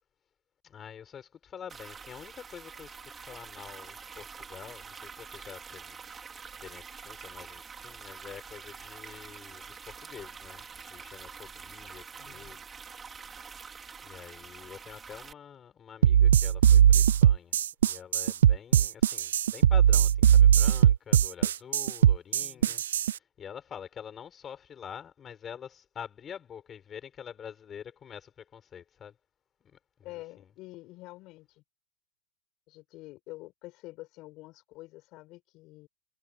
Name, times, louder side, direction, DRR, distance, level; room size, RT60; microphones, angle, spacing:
voice 1, 0.6-6.2 6.6-12.6 14.0-17.6 17.8-29.2 29.6-29.8 30.1-30.2, left 8 dB, 20° left, 6.4 m, -46 dB
sound 1, 1.7-15.3, right 6 dB, 15° right, 4.6 m, -46 dB
voice 2, 12.1-12.6 22.4-22.8 30.0-31.6 32.7-35.9, left 20 dB, 40° left, 6.2 m, -47 dB
sound 2, 16.0-23.1, right 9 dB, 85° right, 0.4 m, -20 dB
hypercardioid pair, 135°, 0 cm